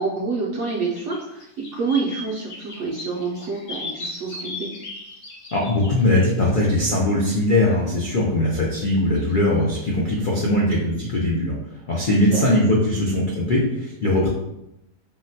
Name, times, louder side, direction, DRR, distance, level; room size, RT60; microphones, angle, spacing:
voice 1, 0.0-4.7 12.3-12.6, right 4 dB, 65° right, -4 dB, 0.7 m, -27 dB
sound 1, 0.7-0.8 1.0-6.3 9.2-9.3, left 2 dB, 70° left, 1.5 m, -37 dB
voice 2, 5.5-11.6 11.9-14.3, left 1 dB, 90° left, -4 dB, 0.4 m, -20 dB
3.8 x 2.1 x 2.7 m, 0.86 s
omnidirectional pair, 1.6 m